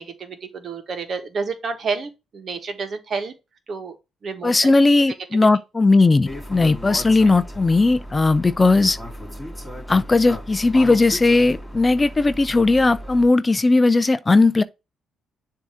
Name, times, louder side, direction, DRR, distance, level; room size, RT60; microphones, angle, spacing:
voice 1, 0.0-3.3 3.7-3.9 4.2-4.7, right 4 dB, 50° right, 1.3 m, -29 dB
voice 2, 4.4-9.0 9.9-14.6, left 3 dB, 25° left, 0.4 m, -17 dB
sound 1, 6.2-13.3, equal, 5° left, 3.2 m, -36 dB
7.0 x 2.8 x 4.9 m
cardioid pair, 90°, 0 cm